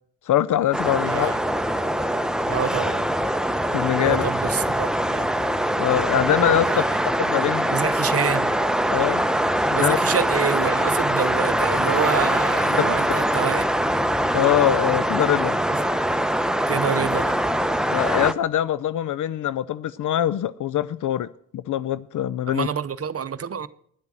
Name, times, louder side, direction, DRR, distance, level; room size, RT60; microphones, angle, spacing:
voice 1, 0.3-1.3 3.7-4.2 5.8-6.8 7.2-7.7 8.9-9.2 9.7-10.0 12.8-13.2 14.3-15.6 17.9-21.3 21.5-22.7, left 11 dB, 60° left, 0.5 m, -23 dB
sound 1, 0.7-18.3, right 1 dB, ahead, 0.8 m, -23 dB
voice 2, 1.1-1.4 2.5-3.0 4.0-5.3 6.6-7.0 7.7-8.6 9.8-13.7 15.7-15.8 16.6-17.4 22.5-23.7, right 7 dB, 40° right, 0.8 m, -27 dB
10.5 x 8.0 x 7.4 m
supercardioid pair, 60°, 36 cm